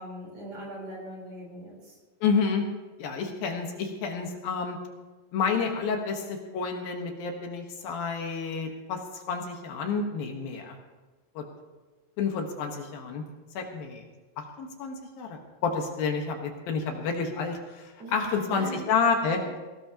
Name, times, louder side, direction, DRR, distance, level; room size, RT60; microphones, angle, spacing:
voice 1, 0.0-1.9 18.0-18.8 19.4-19.5, equal, 35° right, -2 dB, 4.8 m, -40 dB
voice 2, 2.2-2.6 3.0-4.8 5.3-9.0 9.3-10.8 11.4-11.5 12.2-13.2 13.5-14.1 14.4-19.4, left 5 dB, 75° left, 3 dB, 3.1 m, -29 dB
19.5 x 18.0 x 2.9 m, 1.2 s
omnidirectional pair, 4.4 m